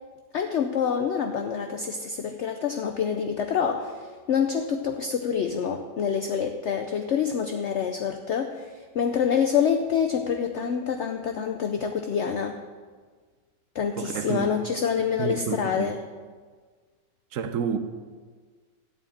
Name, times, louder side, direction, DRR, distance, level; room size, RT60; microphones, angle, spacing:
voice 1, 0.3-12.6 13.7-16.0, left 7 dB, 65° left, 5 dB, 0.7 m, -27 dB
voice 2, 14.0-14.5 15.0-16.0 17.3-17.8, right 6 dB, 55° right, 9 dB, 1.0 m, -30 dB
13.5 x 4.6 x 8.8 m, 1.5 s
omnidirectional pair, 1.9 m